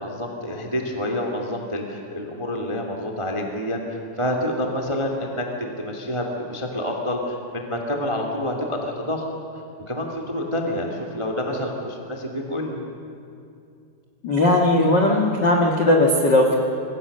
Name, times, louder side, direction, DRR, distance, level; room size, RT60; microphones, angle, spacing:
voice 1, 0.0-9.2 9.9-12.8, left 1 dB, 20° right, 1 dB, 0.8 m, -28 dB
voice 2, 14.2-16.5, left 1 dB, 65° left, 1 dB, 1.0 m, -18 dB
26.5 x 21.5 x 6.7 m, 2.5 s
omnidirectional pair, 5.0 m